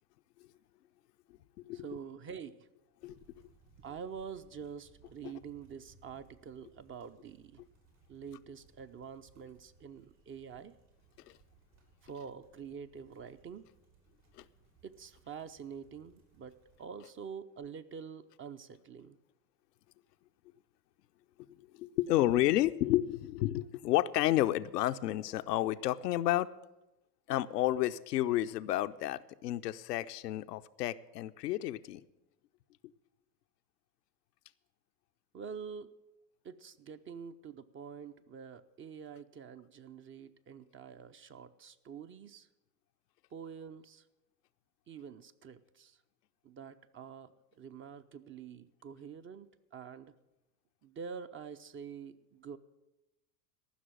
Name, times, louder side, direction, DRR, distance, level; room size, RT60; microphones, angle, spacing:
voice 1, 1.7-2.7 3.8-7.6 8.1-10.7 12.0-13.7 14.8-19.2 35.3-35.9 36.4-42.5 43.3-44.1 44.9-46.0 46.4-50.1 50.8-52.6, right 6 dB, 25° right, 11 dB, 0.6 m, -46 dB
sound 1, 3.0-16.9, right 5 dB, 70° right, 4.6 m, -65 dB
voice 2, 21.6-26.5 27.3-32.0, left 14 dB, 80° left, 10 dB, 0.7 m, -31 dB
14.5 x 6.2 x 9.1 m, 0.97 s
hypercardioid pair, 85°, 48 cm